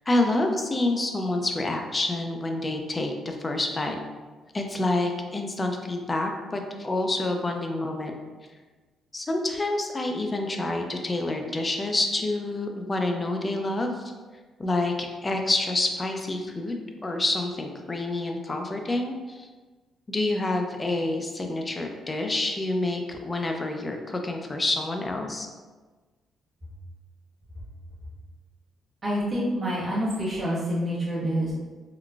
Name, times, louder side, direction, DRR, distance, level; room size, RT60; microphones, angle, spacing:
voice 1, 0.1-4.0 4.5-8.1 9.1-14.0 14.6-19.5 20.1-25.5, left 2 dB, 25° left, 3 dB, 0.4 m, -28 dB
voice 2, 29.0-31.5, equal, 35° right, -7 dB, 1.2 m, -27 dB
3.7 x 2.2 x 2.3 m, 1.3 s
cardioid pair, 90°, 0 cm